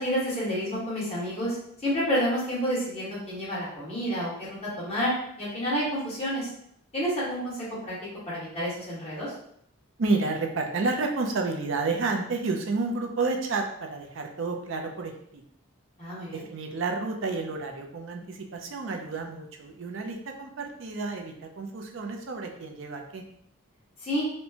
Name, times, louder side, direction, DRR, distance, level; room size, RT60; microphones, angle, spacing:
voice 1, 0.0-5.1 5.4-6.5 6.9-8.0 8.3-9.3 16.0-16.4 24.0-24.2, equal, 30° left, -9 dB, 1.3 m, -29 dB
voice 2, 10.0-15.4 16.3-23.2, right 3 dB, 60° right, 3 dB, 0.5 m, -30 dB
4.3 x 2.2 x 2.8 m, 0.70 s
head